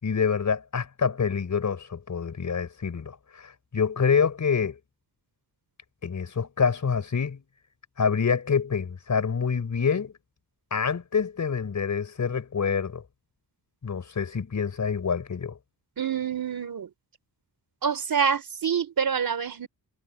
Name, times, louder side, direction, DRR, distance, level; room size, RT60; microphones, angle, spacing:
voice 1, 0.0-4.8 6.0-7.4 8.0-10.1 10.7-13.0 13.8-15.6, left 6 dB, 45° left, 5.4 m, -26 dB
voice 2, 16.0-16.9 17.8-19.7, right 7 dB, 60° right, 4.1 m, -26 dB
wide cardioid pair, 145°, 40 cm